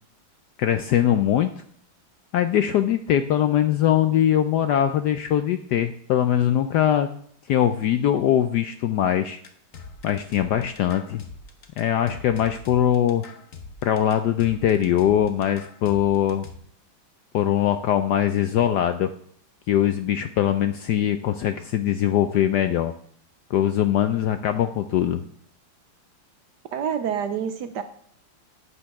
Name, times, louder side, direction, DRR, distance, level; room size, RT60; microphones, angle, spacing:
voice 1, 0.6-1.5 2.3-7.1 7.5-9.4 10.0-11.2 11.8-13.2 13.8-16.5 17.3-19.1 19.7-22.9 23.5-25.2, left 10 dB, 75° left, 9 dB, 0.9 m, -22 dB
sound 1, 9.4-16.6, left 4 dB, 50° left, 1.2 m, -43 dB
voice 2, 26.7-27.8, right 8 dB, 65° right, 10 dB, 1.1 m, -27 dB
11.0 x 8.3 x 3.5 m, 0.63 s
omnidirectional pair, 2.2 m